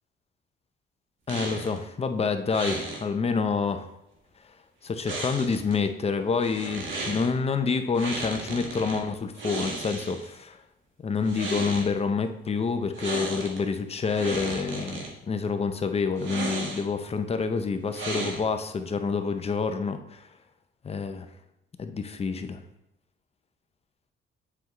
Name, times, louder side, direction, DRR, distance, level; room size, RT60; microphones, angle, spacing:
voice 1, 1.3-3.8 4.8-10.6 11.0-20.3 20.8-21.3 21.8-22.6, left 5 dB, 30° left, 8 dB, 0.6 m, -28 dB
sound 1, 1.3-1.8 2.5-3.0 5.0-5.7 6.4-7.3 7.9-9.0 9.3-10.3 11.2-11.9 12.9-13.6 13.9-15.1 16.2-17.0 17.9-18.6, right 2 dB, 75° right, 1.6 m, -34 dB
7.8 x 4.6 x 3.0 m, 0.85 s
cardioid pair, 90°, 20 cm